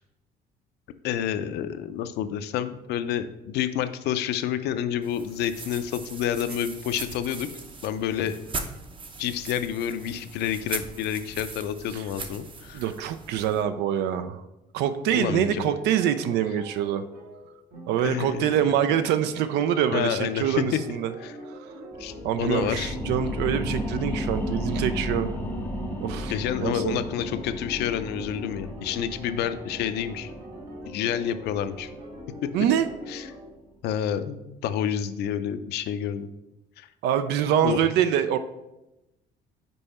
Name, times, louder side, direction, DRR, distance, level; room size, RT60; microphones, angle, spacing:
voice 1, 1.0-7.5 7.8-8.3 9.2-12.9 15.1-15.7 18.0-18.7 19.9-20.6 21.2-21.3 22.0-23.0 26.3-30.3 30.9-31.9 33.1-33.3 33.8-36.3 36.8-36.9 37.6-37.9, left 10 dB, 80° left, 11 dB, 0.5 m, -29 dB
sound 1, 5.0-13.6, right 4 dB, 30° right, 0.7 m, -40 dB
voice 2, 12.7-14.4 14.7-17.0 17.9-21.1 22.2-25.3 26.0-26.3 26.6-27.0 32.5-32.9 37.0-38.4, right 9 dB, 85° right, 11 dB, 0.4 m, -25 dB
sound 2, 14.8-33.4, right 1 dB, 60° right, 2.0 m, -43 dB
sound 3, 21.9-33.1 33.5-33.6, left 1 dB, 10° left, 0.6 m, -34 dB
5.4 x 4.7 x 4.2 m, 0.95 s
cardioid pair, 110°, 17 cm